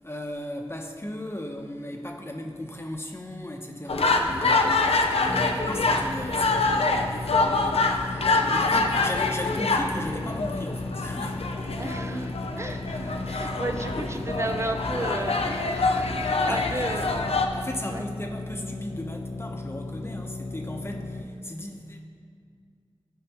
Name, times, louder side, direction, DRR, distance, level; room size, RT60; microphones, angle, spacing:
voice 1, 0.0-11.8 12.1-12.3 16.4-16.7 17.5-22.0, left 1 dB, 25° left, 2 dB, 0.9 m, -36 dB
sound 1, 3.9-17.5, left 3 dB, 90° left, 0.6 m, -25 dB
sound 2, 5.3-21.2, left 2 dB, 50° left, 0.7 m, -36 dB
voice 2, 11.8-17.3 17.9-18.1, right 2 dB, 30° right, 7 dB, 0.6 m, -34 dB
14.0 x 4.9 x 3.0 m, 2.2 s
wide cardioid pair, 55°, 10 cm